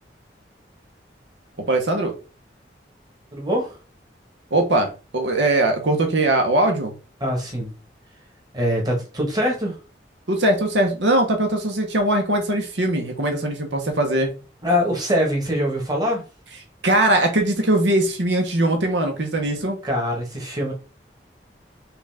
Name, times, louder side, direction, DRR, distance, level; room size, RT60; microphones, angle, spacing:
voice 1, 1.7-2.1 4.5-6.9 10.3-14.3 16.8-19.8, right 1 dB, 85° right, 4 dB, 1.1 m, -20 dB
voice 2, 3.3-3.7 7.2-7.7 8.5-9.7 14.6-16.2 19.8-20.7, equal, 20° right, 0 dB, 1.4 m, -23 dB
6.0 x 2.5 x 3.5 m, 0.34 s
head